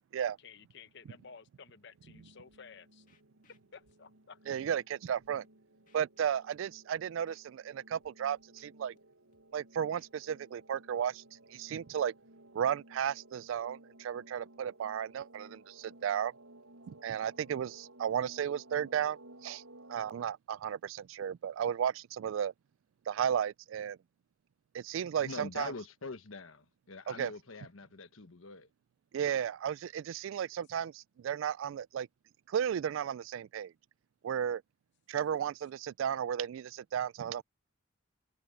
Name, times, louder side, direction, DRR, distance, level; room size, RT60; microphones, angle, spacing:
voice 1, 0.4-3.1 3.7-4.6, left 6 dB, 60° left, 0.9 m, -54 dB
Clang Cinematic Reversed With Deep Kick (Rising), 1.9-20.3, right 1 dB, 90° right, 6.4 m, -57 dB
Scratching (performance technique), 2.5-2.6 3.1-3.9 4.5-4.8 5.0-5.5 5.9-6.8 7.3-7.4 7.9-8.1 8.4-9.0 9.3-10.1, left 5 dB, 40° left, 2.2 m, -70 dB
voice 2, 4.5-5.4 5.9-8.9 9.5-11.2 11.5-12.1 12.5-16.3 16.9-19.6 19.9-22.5 23.1-24.0 24.7-25.7 27.1-27.3 29.1-32.1 32.5-33.7 34.2-34.6 35.1-37.4, right 8 dB, 70° right, 0.3 m, -34 dB
voice 3, 25.2-28.7, left 3 dB, 80° left, 1.2 m, -44 dB
head